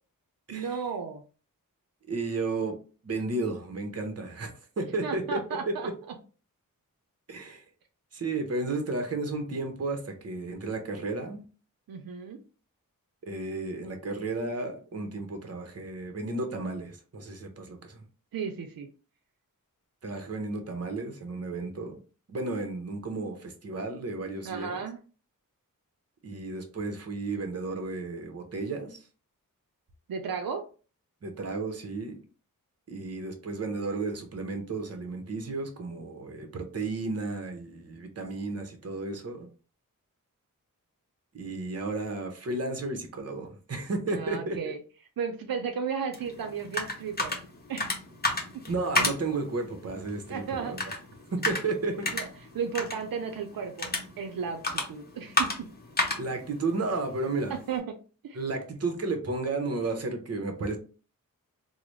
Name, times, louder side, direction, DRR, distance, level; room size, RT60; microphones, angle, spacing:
voice 1, 0.5-1.2 5.0-5.9 11.9-12.4 18.3-18.9 24.4-25.0 30.1-30.6 44.1-44.8 45.2-47.4 47.7-47.9 48.5-48.6 50.3-50.7 52.1-52.3 52.5-53.9 54.2-55.7 57.5-57.9 58.2-58.4, right 6 dB, 85° right, 5 dB, 0.5 m, -34 dB
voice 2, 2.1-2.8 3.0-4.5 4.8-5.9 7.3-7.6 8.1-11.4 13.2-18.0 20.0-22.0 22.3-24.8 26.2-29.0 31.2-32.2 32.9-39.5 41.3-44.6 48.7-50.8 51.3-52.1 56.2-57.5 58.3-60.8, right 3 dB, 45° right, 5 dB, 0.8 m, -33 dB
sound 1, 46.1-57.8, left 2 dB, 30° left, 0.8 m, -33 dB
3.8 x 2.0 x 3.1 m, 0.37 s
wide cardioid pair, 95°, 34 cm